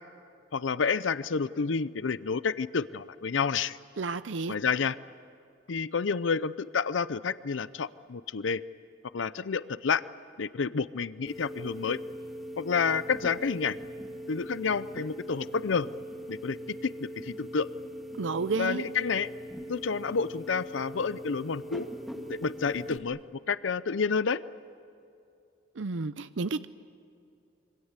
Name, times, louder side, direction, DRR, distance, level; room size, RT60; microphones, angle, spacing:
voice 1, 0.5-3.8 4.5-5.0 5.7-8.6 9.1-10.0 10.4-12.0 12.6-13.8 14.3-15.9 16.3-17.7 18.6-19.3 19.7-21.9 22.3-23.2 23.5-24.4, left 5 dB, 90° left, 16 dB, 0.6 m, -29 dB
voice 2, 4.0-4.5 18.2-18.9 25.8-26.7, right 4 dB, 80° right, 12 dB, 0.6 m, -31 dB
sound 1, 11.3-23.0, equal, ahead, 2.3 m, -41 dB
27.0 x 25.0 x 8.2 m, 2.6 s
head